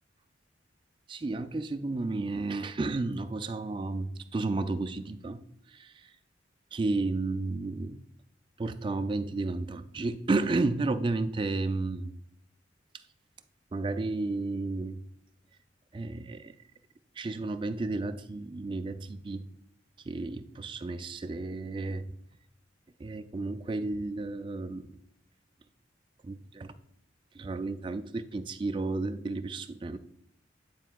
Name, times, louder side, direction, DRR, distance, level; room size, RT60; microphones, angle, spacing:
voice 1, 1.1-5.4 5.7-6.1 6.7-8.0 8.6-12.1 13.7-15.0 15.9-16.5 17.2-19.4 20.1-22.1 23.0-24.9 26.2-26.7 27.3-30.0, right 3 dB, 25° right, 9 dB, 0.3 m, -32 dB
9.3 x 4.5 x 2.3 m, 0.73 s
head